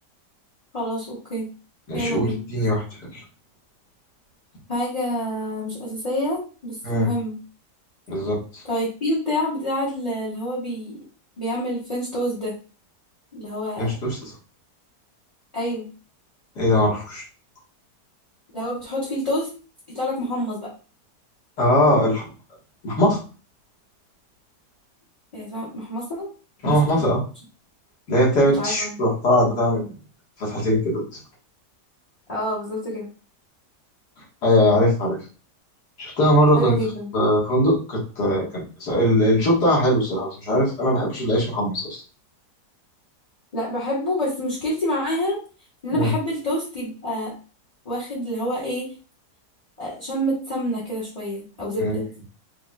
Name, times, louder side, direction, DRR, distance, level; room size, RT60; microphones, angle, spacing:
voice 1, 0.7-1.5 1.9-2.4 4.7-7.4 8.6-11.0 11.4-12.5 13.3-14.0 15.5-15.9 18.5-19.5 19.9-20.7 25.3-26.3 26.6-27.1 28.6-29.0 32.3-33.0 36.5-37.1 43.5-45.4 45.8-47.3 47.8-48.9 49.8-52.0, equal, 25° left, -6 dB, 1.3 m, -27 dB
voice 2, 1.9-2.8 3.1-3.2 6.8-7.1 8.1-8.6 13.8-14.2 16.6-17.2 21.6-22.3 22.8-23.2 26.6-27.2 28.1-29.9 30.4-31.0 34.4-35.2 36.0-36.8 37.1-41.9 45.9-46.1 51.8-52.0, equal, 75° left, -4 dB, 2.4 m, -20 dB
4.8 x 3.8 x 2.4 m, 0.36 s
omnidirectional pair, 1.8 m